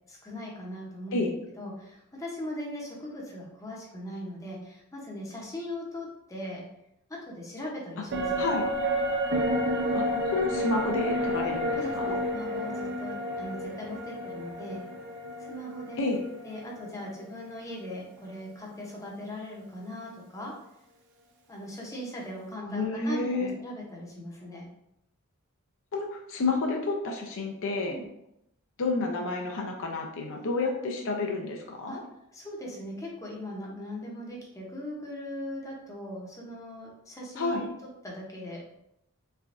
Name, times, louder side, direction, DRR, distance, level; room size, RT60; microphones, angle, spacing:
voice 1, 0.1-1.3 1.6-6.7 7.1-8.5 11.4-14.8 15.4-16.0 16.4-20.5 21.5-24.7 27.9-28.1 31.9-32.0 32.3-37.7 38.0-38.6, left 1 dB, 15° left, -3 dB, 0.7 m, -39 dB
sound 1, 8.1-17.6 17.9-18.0, equal, 55° right, 0.5 m, -31 dB
voice 2, 9.9-12.1 16.0-16.2 22.7-23.5 25.9-28.0 28.8-32.0 37.4-37.6, left 3 dB, 60° left, 2 dB, 0.5 m, -30 dB
3.4 x 3.3 x 2.5 m, 0.81 s
head